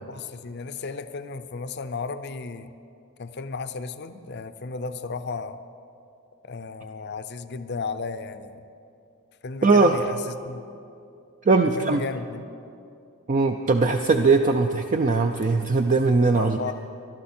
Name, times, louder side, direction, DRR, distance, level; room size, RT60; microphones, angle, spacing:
voice 1, 0.1-2.7 3.2-5.6 6.4-8.6 9.4-10.6 11.8-12.4 16.2-16.7, left 4 dB, 50° left, 10 dB, 0.6 m, -34 dB
voice 2, 9.6-10.0 11.5-12.0 13.3-16.7, right 3 dB, 35° right, 5 dB, 0.4 m, -20 dB
21.0 x 12.0 x 4.4 m, 2.6 s
head